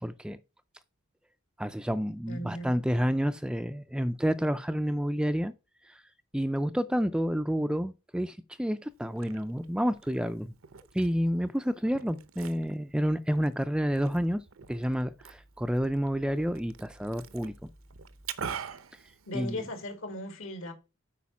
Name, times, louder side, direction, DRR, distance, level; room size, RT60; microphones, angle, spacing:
voice 1, 0.0-0.4 1.6-5.5 5.9-6.0 6.3-10.5 10.9-14.4 14.7-17.5 19.3-19.6, equal, 5° right, 0.3 m, -29 dB
voice 2, 2.3-2.7 19.3-20.7, left 1 dB, 75° left, 2.4 m, -37 dB
Liquid, 8.9-19.9, right 7 dB, 80° right, 0.8 m, -45 dB
8.4 x 5.0 x 5.8 m
head